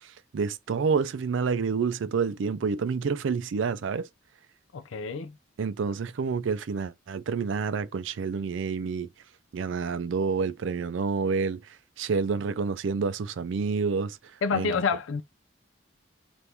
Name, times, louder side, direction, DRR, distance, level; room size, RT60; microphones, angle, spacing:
voice 1, 0.3-4.1 5.6-9.1 9.5-11.6 12.0-14.2 14.5-14.7, right 5 dB, 75° right, 0.4 m, -28 dB
voice 2, 4.7-5.3 14.4-15.2, left 5 dB, 85° left, 0.4 m, -28 dB
2.8 x 2.5 x 3.4 m
head